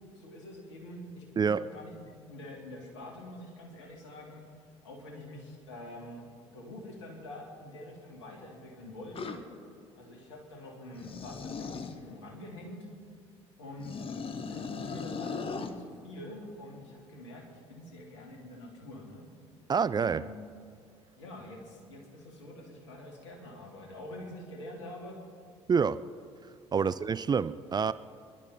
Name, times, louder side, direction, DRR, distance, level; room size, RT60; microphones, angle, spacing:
voice 1, 0.1-4.4 4.8-6.2 6.5-9.4 9.9-12.9 13.6-14.0 14.5-19.3 20.0-20.5 21.2-25.2 26.8-26.9, left 1 dB, 75° left, 1 dB, 2.9 m, -46 dB
sound 1, 9.1-9.4 10.9-12.0 13.8-15.7, left 5 dB, 40° left, 1.3 m, -38 dB
voice 2, 19.7-20.2 25.7-26.0 26.7-27.9, right 6 dB, 30° right, 15 dB, 0.5 m, -27 dB
25.0 x 11.5 x 4.3 m, 2.3 s
figure-of-eight pair, 55°, 15 cm